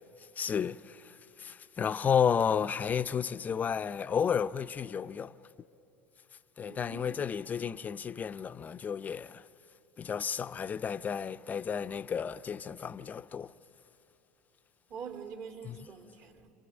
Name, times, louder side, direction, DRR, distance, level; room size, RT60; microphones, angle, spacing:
voice 1, 0.4-5.3 6.6-9.4 10.0-13.5 15.6-15.8, left 7 dB, 30° left, 0.6 m, -32 dB
voice 2, 6.6-7.5 14.9-16.5, right 6 dB, 55° right, 2.5 m, -45 dB
29.5 x 27.5 x 7.2 m
hypercardioid pair, 85°, 6 cm